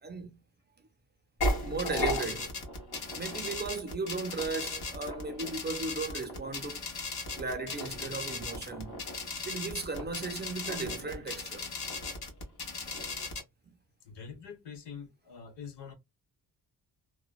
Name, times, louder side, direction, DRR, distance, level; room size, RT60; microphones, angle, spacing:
voice 1, 0.0-0.4 1.6-2.5 3.2-6.9 7.4-9.0 9.5-11.7 13.6-13.8, right 4 dB, 25° right, 0.5 m, -36 dB
sound 1, 1.4-13.4, left 2 dB, 65° left, 1.4 m, -36 dB
voice 2, 14.0-15.9, left 6 dB, 85° left, 1.2 m, -45 dB
2.9 x 2.1 x 2.2 m
wide cardioid pair, 130°, 41 cm